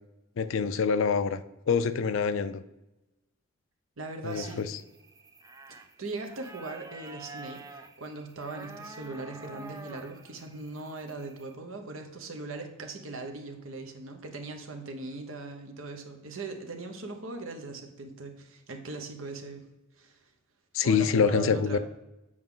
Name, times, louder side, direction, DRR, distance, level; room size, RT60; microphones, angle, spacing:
voice 1, 0.4-1.4 1.7-2.6 4.2-4.8 20.7-21.8, left 5 dB, 65° left, 13 dB, 0.4 m, -26 dB
voice 2, 4.0-4.6 6.0-19.7 20.0-20.2 20.8-21.8, right 3 dB, 70° right, 5 dB, 1.0 m, -40 dB
sound 1, 4.2-11.5, right 3 dB, 15° right, 0.4 m, -48 dB
7.8 x 4.7 x 3.8 m, 0.98 s
head